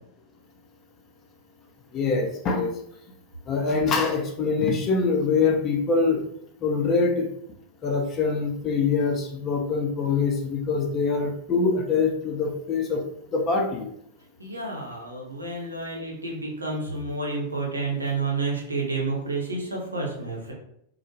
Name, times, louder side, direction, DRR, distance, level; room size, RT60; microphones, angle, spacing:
voice 1, 1.9-2.7 3.5-6.2 6.6-7.3 7.8-13.0 13.3-13.9, left 4 dB, 30° left, 2 dB, 0.5 m, -24 dB
voice 2, 14.4-20.5, right 3 dB, 80° right, -1 dB, 0.7 m, -30 dB
2.1 x 2.1 x 2.9 m, 0.73 s
figure-of-eight pair, 90°, 0 cm